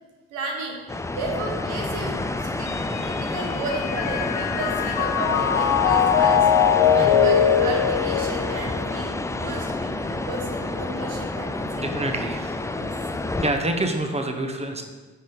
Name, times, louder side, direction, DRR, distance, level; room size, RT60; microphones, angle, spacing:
voice 1, 0.3-0.8 1.1-6.5 6.9-11.9 12.7-12.9, right 2 dB, 80° right, 1 dB, 1.3 m, -33 dB
sound 1, 0.9-13.5, left 2 dB, 10° left, 0.5 m, -28 dB
Mallet percussion, 2.7-9.1, left 8 dB, 75° left, 0.6 m, -22 dB
voice 2, 11.7-12.6 13.4-14.8, right 1 dB, 20° right, 5 dB, 1.2 m, -27 dB
9.8 x 5.3 x 3.9 m, 1.4 s
hypercardioid pair, 45°, 34 cm